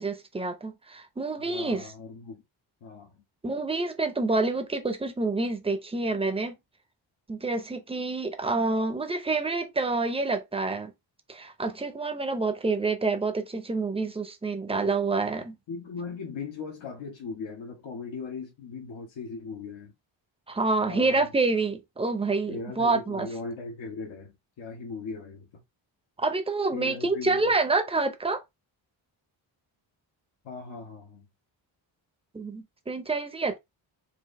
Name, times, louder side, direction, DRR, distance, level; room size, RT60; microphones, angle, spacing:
voice 1, 0.0-1.9 3.4-6.6 7.3-10.9 11.3-15.6 20.5-23.3 26.2-28.4 32.3-33.6, right 3 dB, 10° right, 0.7 m, -27 dB
voice 2, 1.4-2.4 2.8-3.1 15.4-20.0 20.8-21.2 22.5-25.6 26.7-27.5 30.4-31.3, left 4 dB, 70° left, 1.5 m, -39 dB
4.8 x 2.7 x 3.2 m
cardioid pair, 120°, 47 cm